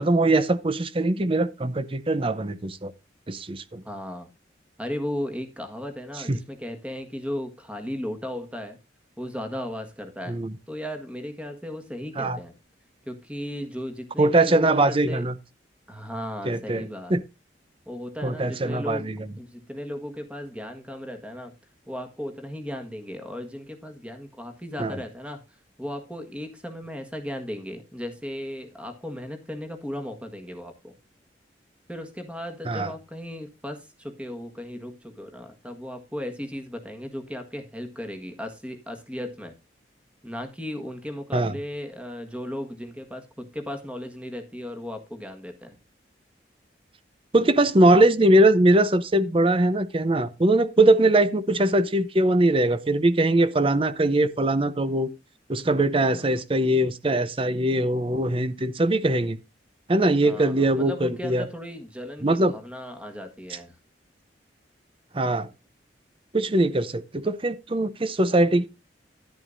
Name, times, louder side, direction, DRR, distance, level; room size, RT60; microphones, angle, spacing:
voice 1, 0.0-2.9 3.3-3.8 6.3-6.4 10.3-10.5 12.2-12.4 14.2-15.3 16.4-17.2 18.2-19.2 24.8-25.0 32.7-32.9 41.3-41.5 47.3-55.1 55.5-59.4 59.9-61.5 62.2-62.5 65.1-65.5 66.3-68.7, right 1 dB, 30° right, 0.7 m, -21 dB
voice 2, 3.8-4.3 4.8-8.8 9.2-10.4 10.7-12.5 13.1-15.3 15.9-17.2 17.9-19.1 19.4-21.5 21.9-25.4 25.8-30.9 31.9-39.5 40.2-45.7 56.0-56.4 60.2-63.8, left 1 dB, 5° right, 1.5 m, -36 dB
11.0 x 10.5 x 2.6 m
head